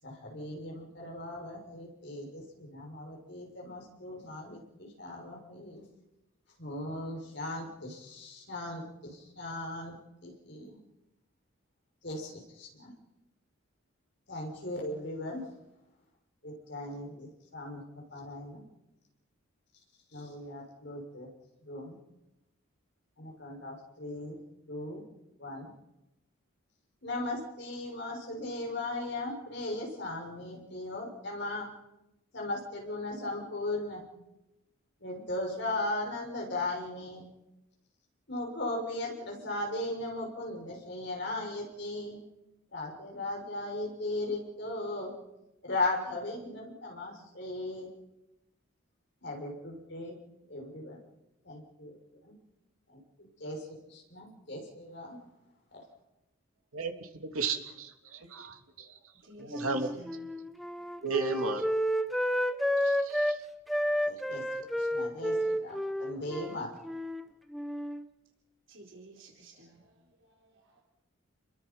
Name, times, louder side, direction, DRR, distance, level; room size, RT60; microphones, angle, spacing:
voice 1, 0.0-5.8 6.6-10.8 12.0-12.9 14.3-15.5 16.4-18.6 20.1-21.3 21.6-22.0 23.2-24.4 24.7-25.0 25.4-25.7 27.0-31.7 32.3-34.1 35.0-37.3 38.3-42.2 42.7-45.1 45.6-47.9 49.2-50.2 50.5-51.0 51.4-51.9 52.2-52.3 52.9-55.2 55.7-55.8 64.1-66.9, left 2 dB, 55° left, 0 dB, 6.5 m, -38 dB
voice 2, 56.7-58.9 59.4-60.0 61.0-61.6 62.8-63.4, right 4 dB, 85° right, 4 dB, 3.0 m, -34 dB
voice 3, 59.2-60.3 60.7-61.1 68.7-70.8, right 2 dB, 65° right, 0 dB, 4.1 m, -54 dB
Wind instrument woodwind instrument, 59.5-63.4 63.7-67.2 67.5-68.1, equal, ahead, 1.0 m, -31 dB
30.0 x 22.0 x 5.7 m, 0.95 s
head